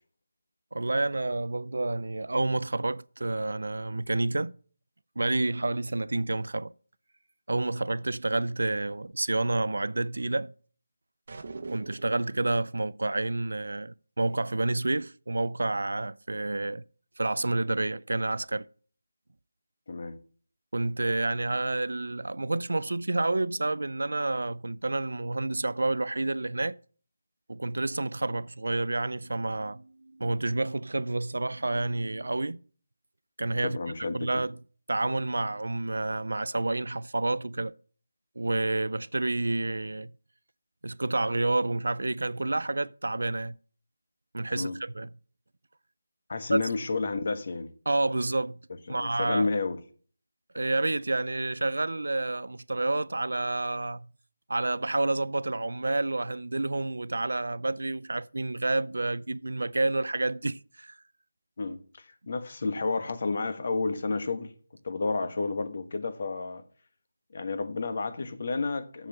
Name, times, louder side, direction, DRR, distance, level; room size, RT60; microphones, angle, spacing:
voice 1, 0.7-4.5 5.2-6.7 7.5-10.5 11.7-16.8 17.2-18.7 20.7-26.8 27.5-32.6 33.4-33.8 34.1-34.5 34.9-37.7 38.4-40.1 40.8-43.5 44.3-45.1 46.5-46.6 47.9-48.6 48.9-49.5 50.5-54.1 54.5-61.0, right 2 dB, 80° right, 0.4 m, -29 dB
sound 1, 11.3-12.3, right 3 dB, 50° right, 0.9 m, -41 dB
voice 2, 33.6-34.4 44.5-44.7 46.3-47.7 48.9-49.8 61.6-61.8 62.3-64.5 64.8-66.6 67.3-69.1, left 3 dB, 45° left, 1.3 m, -30 dB
7.4 x 6.4 x 6.7 m
figure-of-eight pair, 170°, 0 cm